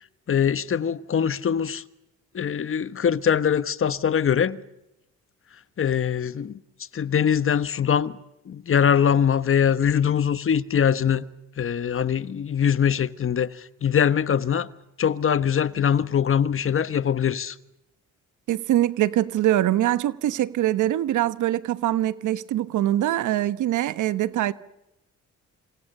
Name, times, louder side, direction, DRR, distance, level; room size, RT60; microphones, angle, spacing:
voice 1, 0.3-1.8 2.3-4.6 5.8-6.6 6.9-8.2 8.4-11.2 11.6-14.7 15.0-17.6, left 8 dB, 45° left, 1.3 m, -22 dB
voice 2, 18.5-24.5, right 13 dB, 80° right, 1.3 m, -23 dB
28.5 x 27.0 x 6.8 m
cardioid pair, 90°, 30 cm